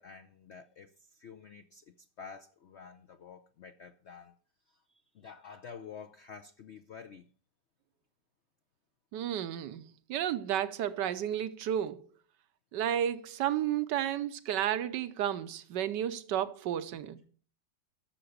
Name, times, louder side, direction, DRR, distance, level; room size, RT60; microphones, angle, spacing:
voice 1, 0.0-4.4 4.7-4.8 5.1-7.3, left 6 dB, 60° left, 0.7 m, -49 dB
voice 2, 9.1-12.1 12.7-17.2, right 10 dB, 80° right, 1.4 m, -32 dB
12.0 x 6.9 x 6.5 m
omnidirectional pair, 1.9 m